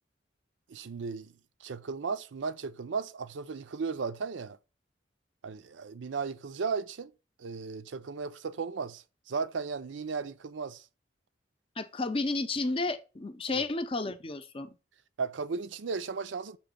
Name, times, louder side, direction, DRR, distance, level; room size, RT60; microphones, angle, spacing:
voice 1, 0.7-1.3 1.6-4.6 5.4-7.1 7.4-10.8 13.5-13.7 15.2-16.6, right 5 dB, 85° right, 0.5 m, -35 dB
voice 2, 11.8-14.7, left 3 dB, 30° left, 0.6 m, -32 dB
6.9 x 3.0 x 5.1 m
head